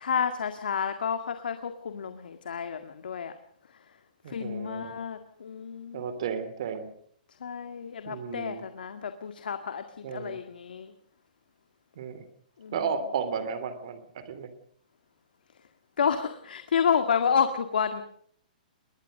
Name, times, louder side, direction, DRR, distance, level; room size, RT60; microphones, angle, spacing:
voice 1, 0.0-3.3 3.7-3.9 4.3-6.0 7.4-10.9 12.6-12.8 16.0-18.0, left 7 dB, 90° left, 8 dB, 1.9 m, -30 dB
voice 2, 4.2-4.9 5.9-6.9 8.0-8.6 10.0-10.4 12.0-12.2 12.7-14.5, right 6 dB, 40° right, 12 dB, 2.8 m, -33 dB
21.5 x 19.5 x 6.6 m, 0.63 s
hypercardioid pair, 180°, 5 cm